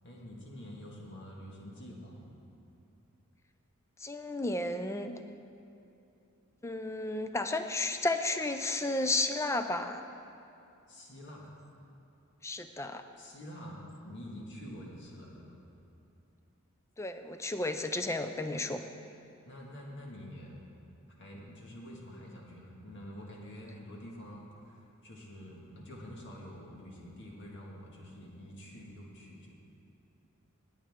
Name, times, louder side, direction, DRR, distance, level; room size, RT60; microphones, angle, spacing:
voice 1, 0.0-2.2 10.9-11.5 13.2-15.5 19.4-20.5 21.2-29.5, equal, 55° left, -2 dB, 1.9 m, -47 dB
voice 2, 4.0-5.2 6.6-10.0 12.4-13.0 17.0-18.9, left 2 dB, 15° left, 8 dB, 0.4 m, -33 dB
18.0 x 8.6 x 3.7 m, 2.7 s
head